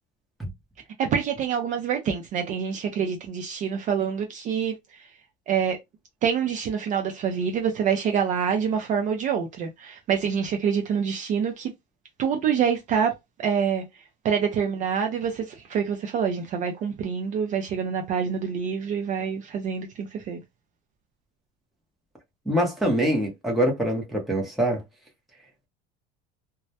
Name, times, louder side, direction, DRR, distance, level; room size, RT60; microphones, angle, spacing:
voice 1, 1.0-5.1 5.5-5.8 6.2-11.7 12.2-13.1 13.4-13.8 14.2-20.4, right 7 dB, 35° right, 0.4 m, -26 dB
voice 2, 22.5-24.8, right 1 dB, ahead, 0.7 m, -24 dB
2.2 x 2.1 x 2.7 m
cardioid pair, 145°, 21 cm